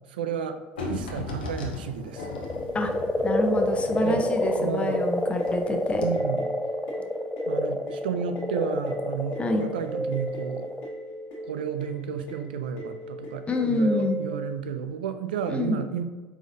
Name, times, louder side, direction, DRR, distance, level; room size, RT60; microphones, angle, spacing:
voice 1, 0.1-0.6 0.9-2.3 4.0-4.2 4.6-5.0 6.0-6.5 7.5-10.7 11.5-16.0, right 7 dB, 85° right, 9 dB, 0.3 m, -32 dB
sound 1, 0.8-5.6 5.9-6.1, left 3 dB, 90° left, 0.8 m, -37 dB
sound 2, 2.1-10.9, left 1 dB, 5° left, 0.3 m, -28 dB
sound 3, 2.2-14.5, right 1 dB, 65° left, 1.4 m, -36 dB
voice 2, 3.2-6.0 9.4-9.7 13.5-14.2 15.5-15.8, left 2 dB, 25° left, 4 dB, 0.7 m, -27 dB
4.9 x 3.8 x 2.6 m, 1.3 s
hypercardioid pair, 75°, 5 cm